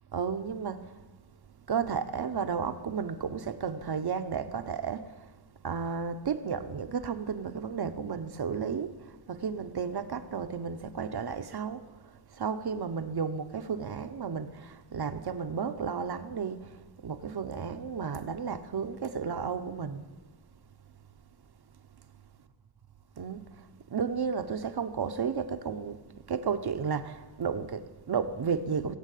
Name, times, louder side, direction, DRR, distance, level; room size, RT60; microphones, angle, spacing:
voice 1, 0.1-0.9 1.7-5.1 5.6-8.9 9.3-11.8 12.4-16.7 17.0-20.0 23.2-23.4 23.9-26.0 26.3-29.0, right 6 dB, 55° right, 1.0 m, -33 dB
18.0 x 8.5 x 8.3 m
wide cardioid pair, 100°, 47 cm